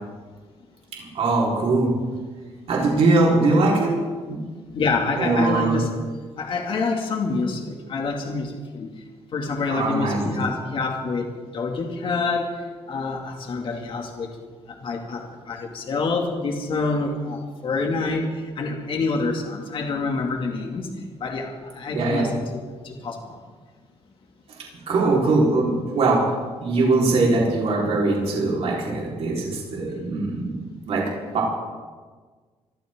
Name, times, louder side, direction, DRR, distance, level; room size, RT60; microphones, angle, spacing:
voice 1, 0.9-2.0 2.7-4.5 5.2-5.8 9.7-10.4 21.9-22.3 24.5-24.6 24.9-26.3 26.6-30.6 30.9-31.5, right 3 dB, 65° right, -3 dB, 4.6 m, -21 dB
voice 2, 4.7-5.9 6.4-8.9 9.3-14.3 14.7-20.9 21.2-22.4 22.7-23.4, left 3 dB, 50° left, 1 dB, 2.6 m, -27 dB
26.0 x 13.5 x 3.9 m, 1.4 s
cardioid pair, 135°, 11 cm